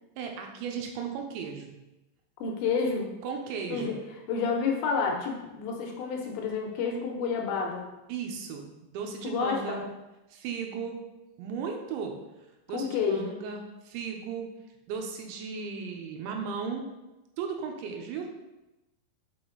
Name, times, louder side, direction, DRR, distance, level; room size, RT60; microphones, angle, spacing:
voice 1, 0.2-1.8 3.2-4.0 8.1-9.9 10.3-11.0 11.4-12.2 12.7-14.5 14.9-16.8 17.4-18.4, right 6 dB, 85° right, 2 dB, 3.0 m, -36 dB
voice 2, 2.4-3.1 3.7-4.0 4.3-7.9 9.2-9.8 12.7-13.4, left 5 dB, 80° left, 1 dB, 2.9 m, -29 dB
6.0 x 5.8 x 3.8 m, 1.0 s
omnidirectional pair, 5.4 m